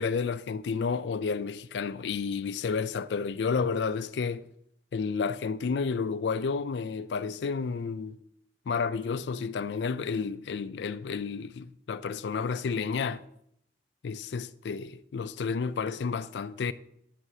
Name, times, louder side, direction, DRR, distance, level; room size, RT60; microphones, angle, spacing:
voice 1, 0.0-4.4 4.9-8.2 8.7-13.2 14.0-16.7, left 5 dB, 80° left, 0.4 m, -31 dB
9.8 x 7.7 x 2.8 m
head